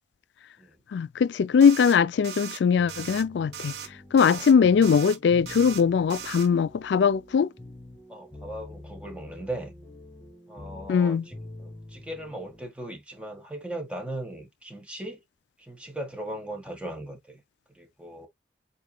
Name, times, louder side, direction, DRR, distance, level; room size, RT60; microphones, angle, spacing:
voice 1, 0.9-3.7 4.1-7.5 10.9-11.2, left 6 dB, 85° left, 0.4 m, -21 dB
sound 1, 1.6-2.0 2.2-2.6 2.9-3.2 3.5-3.9 4.2-4.5 4.8-5.2 5.5-5.8 6.1-6.5, right 9 dB, 75° right, 0.8 m, -38 dB
sound 2, 2.8-12.7, left 1 dB, 10° left, 2.4 m, -46 dB
voice 2, 4.3-4.6 8.1-9.7 10.5-15.2 15.6-17.4 17.7-18.3, right 1 dB, 5° right, 1.5 m, -38 dB
8.1 x 2.9 x 2.2 m
head